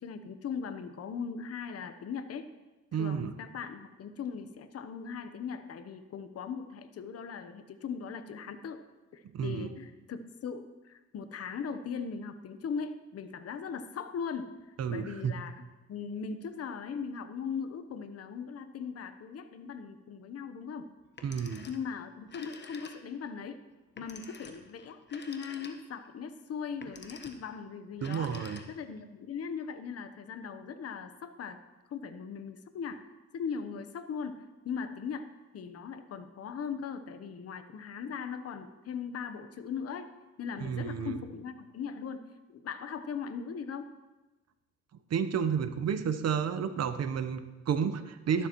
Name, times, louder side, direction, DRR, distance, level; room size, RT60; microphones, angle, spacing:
voice 1, 0.0-2.5 3.0-8.8 9.1-14.5 14.9-20.9 21.7-23.6 24.0-28.3 28.7-31.6 31.9-33.0 33.3-35.3 35.5-40.1 40.4-43.9, left 6 dB, 55° left, 9 dB, 0.9 m, -39 dB
voice 2, 2.9-3.3 9.3-9.7 14.8-15.3 21.2-21.6 28.0-28.6 40.6-41.2 45.1-48.5, right 7 dB, 55° right, 10 dB, 0.9 m, -31 dB
Telephone, 21.0-21.9 22.2-23.3 24.0-26.1 26.7-27.5 27.9-29.0, left 4 dB, 35° left, 1.2 m, -49 dB
12.5 x 11.5 x 3.1 m, 1.1 s
cardioid pair, 90°, 30 cm